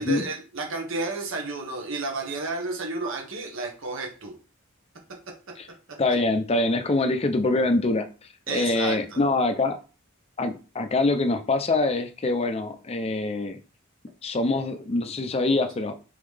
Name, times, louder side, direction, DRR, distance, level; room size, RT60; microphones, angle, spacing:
voice 1, 0.0-4.3 8.5-9.2, right 3 dB, 65° right, 1.2 m, -31 dB
voice 2, 6.0-8.1 8.5-9.8 10.4-13.6 14.2-15.9, left 2 dB, 30° left, 0.5 m, -24 dB
3.8 x 3.7 x 3.3 m
head